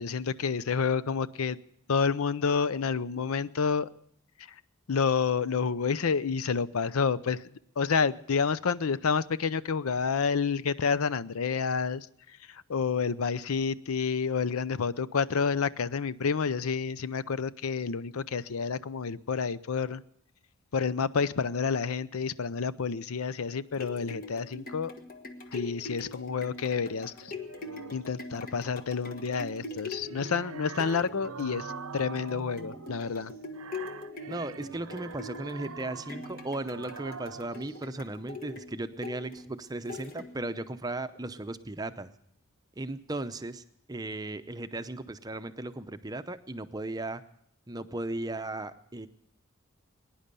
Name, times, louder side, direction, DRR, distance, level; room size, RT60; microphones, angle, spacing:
voice 1, 0.0-1.6 1.9-3.9 4.9-7.4 7.8-12.1 12.5-20.0 20.7-24.9 25.5-27.3 27.9-33.3, left 5 dB, 85° left, 0.6 m, -29 dB
sound 1, 23.5-40.6 41.1-41.2, left 3 dB, 40° left, 1.3 m, -43 dB
sound 2, 27.2-28.2 29.7-37.8, right 5 dB, 90° right, 0.7 m, -44 dB
voice 2, 34.3-42.1 42.8-43.6 43.9-47.2 47.7-49.1, right 2 dB, 20° right, 0.6 m, -36 dB
21.0 x 10.5 x 6.8 m
head